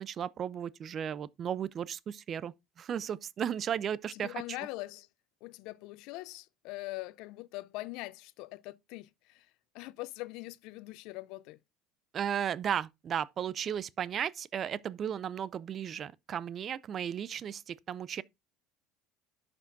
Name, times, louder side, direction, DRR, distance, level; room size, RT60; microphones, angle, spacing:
voice 1, 0.0-4.4 12.1-18.2, right 9 dB, 45° right, 0.5 m, -35 dB
voice 2, 4.1-5.1 5.4-9.5 9.7-11.6, left 20 dB, 70° left, 0.5 m, -42 dB
11.0 x 6.0 x 2.6 m
supercardioid pair, 85°, 0 cm